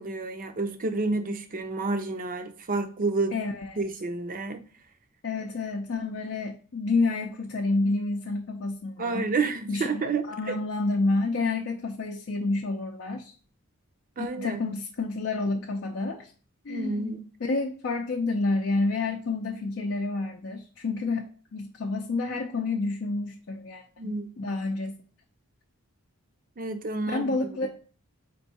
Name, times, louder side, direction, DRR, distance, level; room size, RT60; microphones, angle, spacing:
voice 1, 0.0-3.4 3.8-4.6 9.0-10.6 14.2-14.8 16.7-17.2 24.0-24.6 26.6-27.7, right 3 dB, 40° right, 0.5 m, -30 dB
voice 2, 3.3-3.7 5.2-9.3 9.7-13.3 14.2-16.3 16.6-17.1 17.4-25.0 27.1-27.7, left 3 dB, 55° left, 0.5 m, -29 dB
4.5 x 2.7 x 4.1 m
head